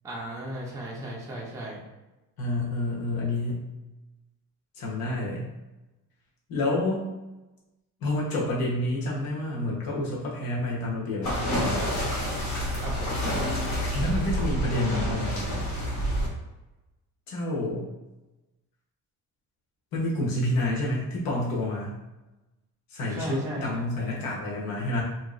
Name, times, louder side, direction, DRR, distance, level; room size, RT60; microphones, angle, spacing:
voice 1, 0.0-1.8 12.8-13.2 23.1-23.8, right 1 dB, 10° right, -4 dB, 0.5 m, -36 dB
voice 2, 2.4-3.6 4.7-5.5 6.5-7.0 8.0-11.4 13.9-15.6 17.3-17.9 19.9-22.0 22.9-25.0, left 1 dB, 80° left, -4 dB, 1.0 m, -28 dB
sound 1, 11.2-16.3, equal, 50° left, 1.3 m, -28 dB
2.8 x 2.8 x 2.5 m, 1.0 s
cardioid pair, 130°, 35 cm